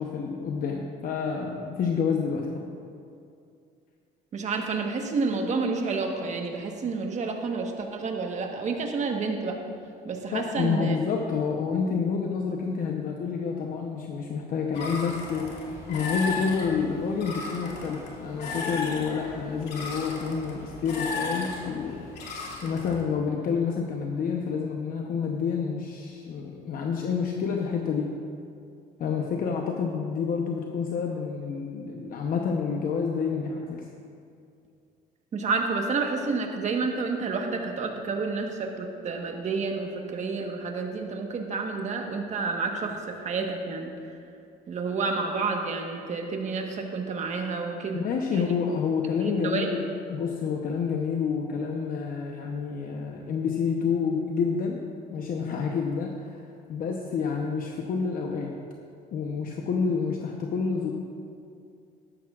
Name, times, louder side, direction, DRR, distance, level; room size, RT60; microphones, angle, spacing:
voice 1, 0.0-2.7 10.3-15.5 15.9-22.0 22.6-28.1 29.0-33.9 47.9-49.8 50.1-54.8 55.1-56.4 56.7-58.5 59.1-60.9, left 5 dB, 55° left, 1 dB, 0.8 m, -28 dB
voice 2, 4.3-9.6 10.0-11.0 35.3-43.9 44.7-48.5 49.2-49.7, right 4 dB, 45° right, 3 dB, 1.3 m, -30 dB
sound 1, 14.7-23.0, left 3 dB, 80° left, 2.2 m, -35 dB
13.0 x 12.0 x 2.4 m, 2.4 s
cardioid pair, 110°, 17 cm